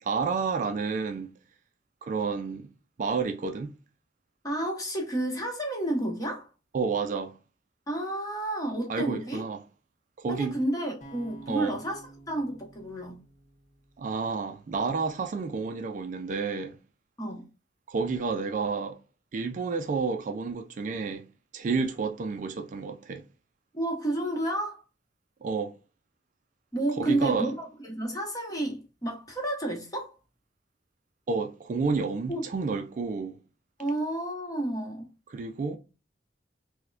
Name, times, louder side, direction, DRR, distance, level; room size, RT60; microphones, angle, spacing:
voice 1, 0.0-1.3 2.0-2.7 3.0-3.7 6.7-7.3 8.9-9.6 10.2-10.6 11.5-11.8 14.0-16.8 17.9-19.0 19.3-21.2 21.5-23.2 25.4-25.7 27.0-27.5 31.3-33.4 35.3-35.8, right 4 dB, 45° right, 0.3 m, -30 dB
voice 2, 4.4-6.5 7.9-9.4 10.3-12.0 12.3-13.2 17.2-17.4 23.7-24.8 26.7-30.1 32.3-32.4 33.8-35.1, right 1 dB, 20° left, 1.0 m, -31 dB
sound 1, 11.0-15.1, right 3 dB, 40° left, 0.8 m, -52 dB
4.3 x 2.1 x 2.4 m
head